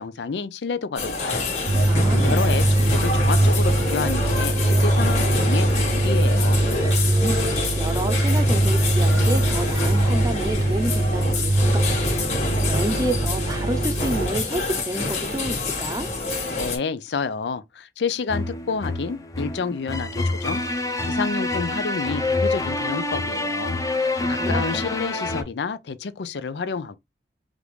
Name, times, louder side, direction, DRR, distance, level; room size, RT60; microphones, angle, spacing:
voice 1, 0.0-1.6 2.2-6.6 16.6-20.6 21.0-27.0, left 5 dB, 85° left, 0.5 m, -29 dB
sound 1, 1.0-16.8, left 3 dB, 40° left, 1.7 m, -27 dB
sound 2, 1.7-14.3, right 1 dB, 60° right, 0.6 m, -21 dB
voice 2, 1.9-2.4 7.1-12.1 12.4-16.1 24.2-24.6, right 1 dB, 20° right, 0.6 m, -30 dB
sound 3, 18.3-25.4, left 2 dB, 20° left, 0.6 m, -26 dB
5.0 x 2.6 x 3.2 m
head